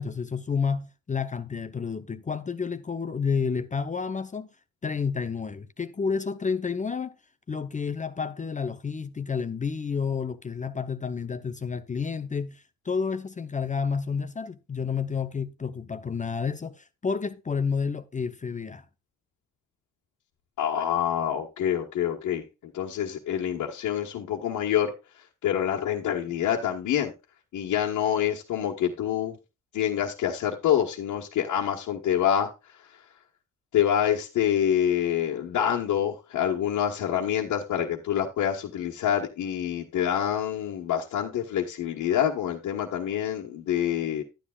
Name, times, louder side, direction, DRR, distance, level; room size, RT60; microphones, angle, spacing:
voice 1, 0.0-4.5 4.8-7.1 7.5-18.8, left 5 dB, 25° left, 0.7 m, -30 dB
voice 2, 20.6-22.4 22.7-24.9 25.4-27.1 27.5-29.4 29.7-32.5 33.7-44.2, left 10 dB, 75° left, 1.5 m, -26 dB
11.5 x 9.7 x 2.4 m
cardioid pair, 90°, 30 cm